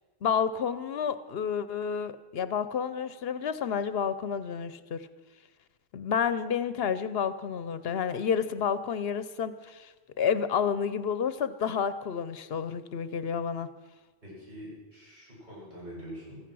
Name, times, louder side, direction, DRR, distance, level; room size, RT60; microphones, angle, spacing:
voice 1, 0.2-5.1 5.9-9.9 10.2-13.7, left 7 dB, 70° left, 13 dB, 0.9 m, -30 dB
voice 2, 14.2-16.4, equal, 45° right, -6 dB, 7.3 m, -44 dB
16.0 x 14.0 x 6.2 m, 1.3 s
omnidirectional pair, 1.1 m